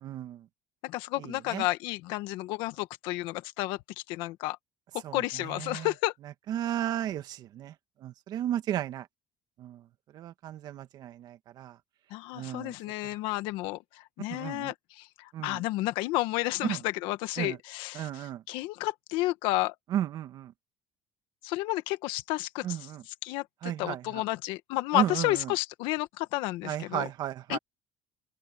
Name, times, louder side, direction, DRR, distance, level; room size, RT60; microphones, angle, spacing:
voice 1, 0.0-0.4 1.2-1.6 5.0-5.9 6.5-7.7 8.0-9.1 9.6-9.8 10.1-11.8 12.3-12.7 14.3-14.7 15.3-15.6 16.6-16.8 17.4-17.6 17.9-18.4 19.9-20.5 22.6-23.0 23.6-24.2 24.9-25.5 26.6-27.6, right 11 dB, 55° right, 1.9 m, -34 dB
voice 2, 0.8-3.8 4.1-4.6 5.1-6.1 12.1-19.7 21.4-27.1 27.5-27.6, left 18 dB, 85° left, 1.5 m, -31 dB
open air
cardioid pair, 120°, 8 cm